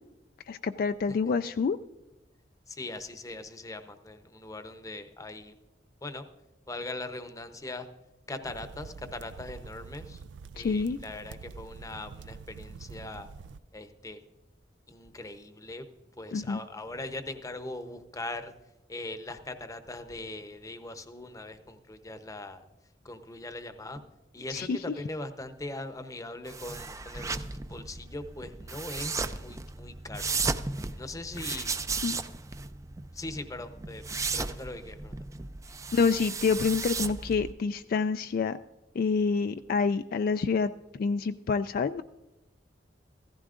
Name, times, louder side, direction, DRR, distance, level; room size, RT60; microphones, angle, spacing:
voice 1, 0.5-1.8 10.6-11.0 16.3-16.6 24.5-24.8 32.0-32.2 35.9-38.6 39.0-42.0, left 5 dB, 55° left, 10 dB, 0.3 m, -27 dB
voice 2, 2.7-5.5 6.0-6.3 6.7-7.9 8.3-10.2 10.5-13.3 13.7-14.2 14.9-15.9 16.2-18.5 18.9-22.6 23.0-24.0 24.3-27.4 27.7-30.3 31.0-31.7 33.1-34.0 34.3-35.1, left 2 dB, 20° left, 9 dB, 0.7 m, -40 dB
sound 1, 8.4-13.6, right 5 dB, 85° right, 0.4 m, -46 dB
sound 2, 26.5-37.5, right 4 dB, 20° right, 0.4 m, -35 dB
15.5 x 14.5 x 2.5 m, 1.0 s
head